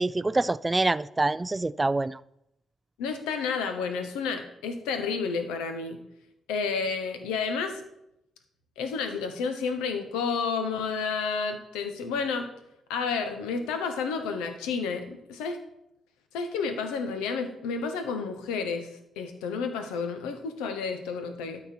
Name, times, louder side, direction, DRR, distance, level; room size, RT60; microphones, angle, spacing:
voice 1, 0.0-2.2, right 2 dB, 20° right, 18 dB, 0.3 m, -26 dB
voice 2, 3.0-6.0 6.5-7.8 8.8-12.5 12.9-15.6 16.3-18.9 19.2-21.6, left 5 dB, 75° left, 7 dB, 1.0 m, -30 dB
12.5 x 4.3 x 4.4 m, 0.80 s
hypercardioid pair, 40°, 0 cm